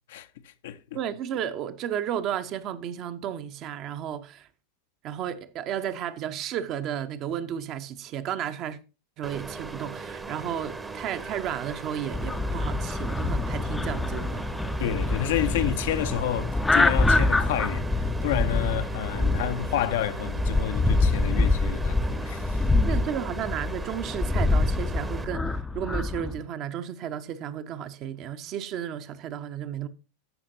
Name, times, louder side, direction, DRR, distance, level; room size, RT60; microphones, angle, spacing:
voice 1, 0.1-1.0 14.8-22.9, left 11 dB, 60° left, 0.6 m, -30 dB
voice 2, 0.9-4.5 5.0-8.8 9.2-14.5 22.8-29.9, right 9 dB, 40° right, 0.7 m, -33 dB
sound 1, 9.2-25.3, right 4 dB, 10° right, 0.8 m, -39 dB
sound 2, 12.1-26.4, left 2 dB, 10° left, 0.5 m, -26 dB
14.0 x 5.8 x 2.7 m
figure-of-eight pair, 90°, 0 cm